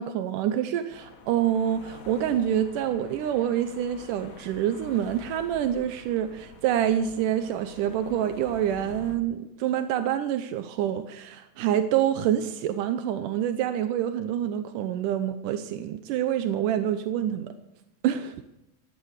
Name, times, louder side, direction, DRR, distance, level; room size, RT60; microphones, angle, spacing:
voice 1, 0.0-17.5 18.0-18.4, right 10 dB, 85° right, 9 dB, 2.4 m, -27 dB
sound 1, 0.9-9.2, left 4 dB, 70° left, 0.8 m, -47 dB
17.0 x 11.0 x 6.6 m, 0.91 s
omnidirectional pair, 3.6 m